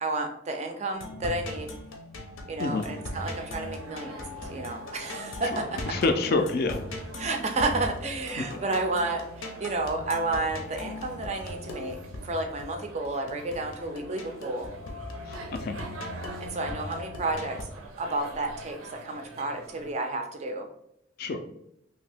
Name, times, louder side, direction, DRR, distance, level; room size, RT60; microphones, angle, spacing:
voice 1, 0.0-1.8 2.5-4.2 4.5-5.9 7.1-12.0 12.2-14.7 16.4-17.6 18.0-20.7, right 2 dB, 35° right, 4 dB, 0.3 m, -31 dB
sound 1, 0.9-17.6, left 1 dB, 80° left, 0.6 m, -40 dB
sound 2, 2.7-19.9, right 2 dB, 85° right, 0.5 m, -46 dB
voice 2, 5.9-6.8 8.4-8.5 15.3-15.8 21.2-21.4, left 3 dB, 50° left, 7 dB, 0.3 m, -27 dB
2.8 x 2.6 x 3.3 m, 0.78 s
head